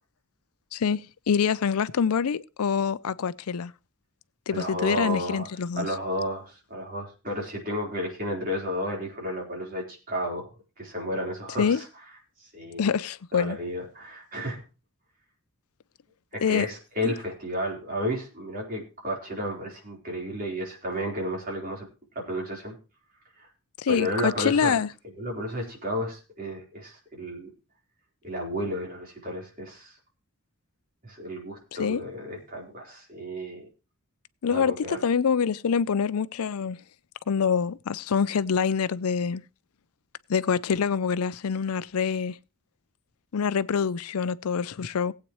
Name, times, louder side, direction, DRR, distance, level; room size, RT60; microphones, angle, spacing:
voice 1, 0.7-1.0 1.3-3.7 4.5-5.9 11.6-11.8 12.8-13.6 16.4-16.7 17.0-17.1 23.8-24.9 31.8-32.0 34.4-36.8 37.3-39.4 40.3-42.4 43.3-45.1, left 6 dB, 80° left, 0.5 m, -25 dB
voice 2, 4.5-5.5 5.7-11.9 12.4-12.9 13.3-14.6 16.3-21.9 22.1-22.8 23.4-23.5 23.9-24.8 25.2-27.5 28.2-30.0 31.0-33.7 34.5-35.0, equal, 40° right, 4.1 m, -32 dB
19.0 x 8.5 x 3.1 m
head